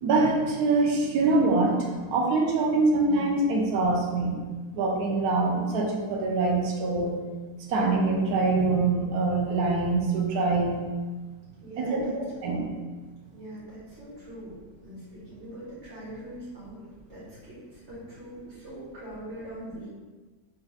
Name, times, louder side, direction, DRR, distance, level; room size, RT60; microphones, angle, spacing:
voice 1, 0.0-4.4 4.7-7.2 7.6-10.8 11.8-12.7, right 3 dB, 85° right, -1 dB, 1.2 m, -24 dB
voice 2, 11.6-12.1 13.3-14.5 14.8-19.9, right 1 dB, 50° right, -9 dB, 1.6 m, -42 dB
4.4 x 2.5 x 3.3 m, 1.3 s
omnidirectional pair, 1.5 m